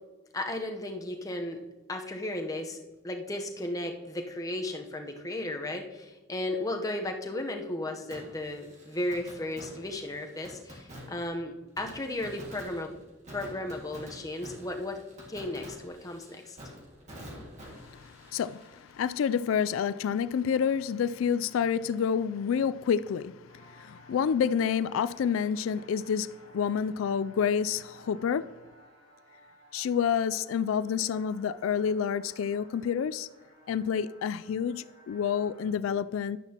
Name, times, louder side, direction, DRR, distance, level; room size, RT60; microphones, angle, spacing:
voice 1, 0.3-1.6 1.9-2.8 3.0-13.0 13.3-15.0 15.3-16.6, left 1 dB, 15° left, 0.8 m, -35 dB
Fireworks, 8.1-19.8 20.1-20.2 26.8-26.9, equal, 35° right, 1.9 m, -48 dB
voice 2, 17.7-28.5 29.7-33.3 33.7-36.4, left 7 dB, 85° left, 0.3 m, -29 dB
sound 1, 23.5-35.7, equal, 65° right, 3.2 m, -57 dB
11.0 x 9.7 x 2.9 m
head